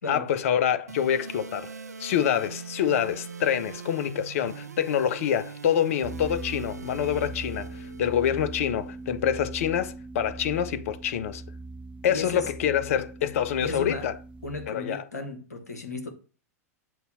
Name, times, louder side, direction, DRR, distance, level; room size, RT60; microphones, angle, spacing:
voice 1, 0.1-1.7 2.0-11.4 12.0-14.1 14.7-15.0, left 9 dB, 60° left, 0.5 m, -26 dB
sound 1, 0.9-8.9, right 5 dB, 85° right, 0.4 m, -42 dB
sound 2, 6.0-14.7, right 2 dB, 10° right, 0.5 m, -40 dB
voice 2, 12.1-12.5 13.6-14.1 14.4-16.1, left 3 dB, 85° left, 1.1 m, -35 dB
7.5 x 2.7 x 5.5 m
figure-of-eight pair, 95°, 8 cm